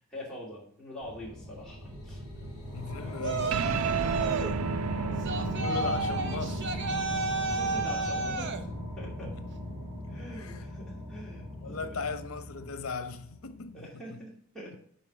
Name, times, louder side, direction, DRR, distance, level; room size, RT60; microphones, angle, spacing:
voice 1, 0.1-2.5 3.0-3.2 4.2-4.5 5.0-5.6 7.4-8.6 9.0-9.3 10.1-12.0 13.7-14.8, left 1 dB, 5° left, 2.5 m, -44 dB
sound 1, 1.0-13.5, equal, 15° right, 3.7 m, -38 dB
voice 2, 2.7-4.0 5.4-7.4 9.2-9.3 10.4-10.6 11.6-14.2, left 4 dB, 85° left, 0.7 m, -38 dB
Yell, 3.2-4.6 5.2-8.6, right 4 dB, 60° right, 0.7 m, -31 dB
sound 2, 3.5-10.3, right 7 dB, 80° right, 0.3 m, -36 dB
7.4 x 5.1 x 5.0 m
head